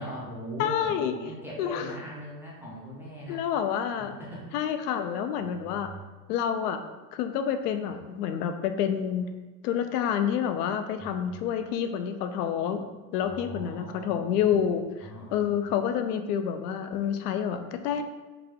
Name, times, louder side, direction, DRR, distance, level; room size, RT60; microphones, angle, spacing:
voice 1, 0.0-3.4 3.9-4.7 5.4-6.0 7.9-8.0 11.0-11.4 13.2-14.5 15.0-15.7, equal, 5° right, -7 dB, 0.4 m, -41 dB
voice 2, 0.6-1.2 1.6-1.8 3.3-4.2 4.5-5.9 6.3-6.8 7.1-9.3 9.6-12.8 13.1-18.0, left 8 dB, 75° left, 8 dB, 0.5 m, -28 dB
3.7 x 2.3 x 3.2 m, 1.3 s
supercardioid pair, 125°, 47 cm